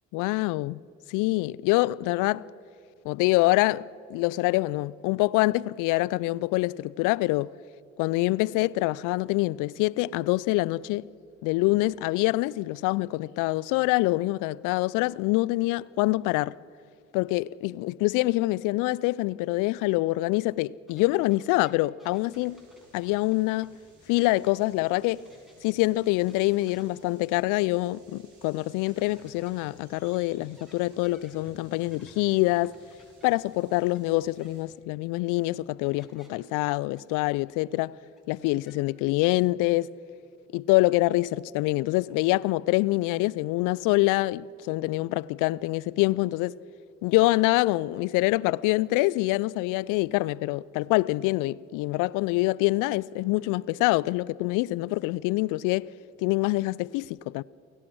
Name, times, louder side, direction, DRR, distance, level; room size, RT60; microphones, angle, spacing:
voice 1, 0.1-0.8 1.1-2.4 3.0-7.5 8.0-11.1 11.4-16.6 17.1-22.6 22.9-23.8 24.1-25.3 25.6-32.7 33.2-38.0 38.3-39.9 40.5-46.6 47.0-55.9 56.2-57.4, left 20 dB, 65° left, 0.5 m, -25 dB
sound 1, 20.9-24.7 24.9-27.8 28.1-28.2 28.8-34.1 34.4-34.5 35.4-35.5 35.8-36.4 37.0-39.0 39.3-39.7, left 1 dB, ahead, 6.3 m, -60 dB
sound 2, 22.1-34.6, right 2 dB, 60° right, 6.7 m, -58 dB
29.0 x 17.5 x 6.2 m
figure-of-eight pair, 45°, 34 cm